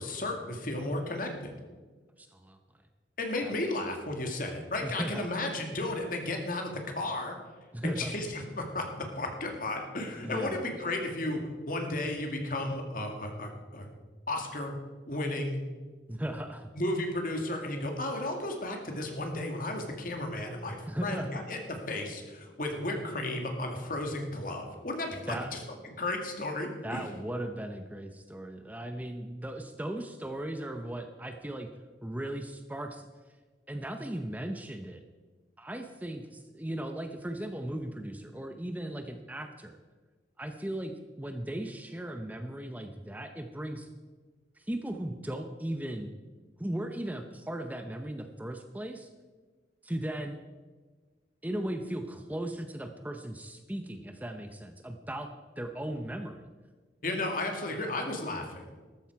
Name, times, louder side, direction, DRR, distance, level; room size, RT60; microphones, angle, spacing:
voice 1, 0.0-1.5 3.2-7.4 7.8-11.4 11.7-13.9 14.3-14.7 15.1-15.6 16.8-25.6 25.8-27.0 57.0-58.6, left 2 dB, 50° left, 3 dB, 2.2 m, -34 dB
voice 2, 2.2-2.6 3.4-3.5 4.8-5.3 7.7-8.1 10.1-10.6 16.1-16.7 20.9-21.3 25.3-25.5 26.8-31.7 32.0-33.1 33.7-35.0 35.6-39.8 40.4-43.9 44.6-46.1 46.6-49.1 49.8-50.4 51.4-56.5, right 1 dB, 10° right, 6 dB, 0.7 m, -37 dB
13.5 x 13.5 x 4.7 m, 1.4 s
head